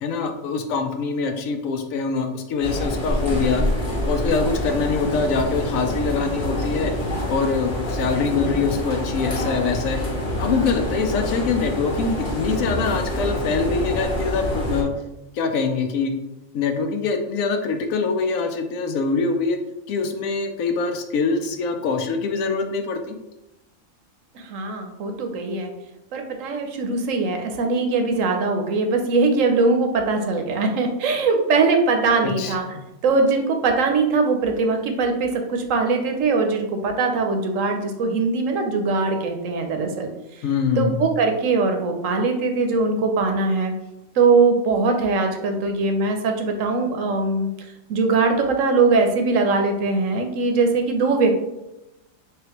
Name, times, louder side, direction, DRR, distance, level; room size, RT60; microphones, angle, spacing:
voice 1, 0.0-3.6 4.1-6.9 7.3-10.0 10.4-14.9 15.3-16.1 16.5-19.6 19.9-23.2 32.2-32.6 40.4-41.1, left 4 dB, 75° left, 5 dB, 1.0 m, -24 dB
sound 1, 2.6-14.8, left 1 dB, 45° left, 0.9 m, -26 dB
voice 2, 24.4-25.7 26.1-32.7 33.0-40.1 40.8-43.7 44.2-47.5 47.9-51.3, right 4 dB, 70° right, 4 dB, 1.0 m, -21 dB
3.7 x 3.2 x 2.9 m, 0.94 s
omnidirectional pair, 1.4 m